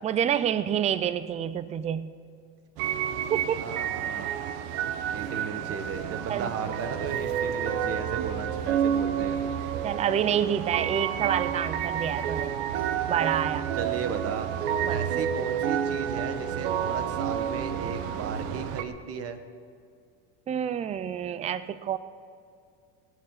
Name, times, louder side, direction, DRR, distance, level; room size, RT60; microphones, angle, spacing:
voice 1, 0.0-2.1 3.3-3.7 6.3-6.5 9.8-12.5 13.1-13.7 14.8-15.0 20.5-22.0, right 9 dB, 20° right, 15 dB, 0.4 m, -28 dB
sound 1, 2.8-18.8, right 8 dB, 75° right, 1.1 m, -30 dB
voice 2, 3.5-4.3 5.1-9.4 13.8-14.5 14.9-19.4, right 6 dB, 35° right, 9 dB, 1.3 m, -35 dB
19.0 x 8.5 x 6.6 m, 2.3 s
supercardioid pair, 130°, 39 cm